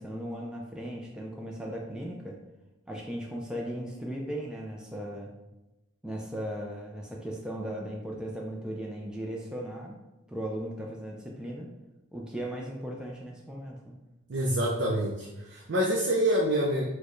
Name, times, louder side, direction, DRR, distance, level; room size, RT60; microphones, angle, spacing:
voice 1, 0.0-2.4 2.9-5.3 6.0-10.0 10.3-11.7 12.1-14.0, equal, 5° right, -2 dB, 0.4 m, -37 dB
voice 2, 14.3-16.9, right 1 dB, 65° right, -3 dB, 0.5 m, -26 dB
4.4 x 2.2 x 3.0 m, 0.99 s
head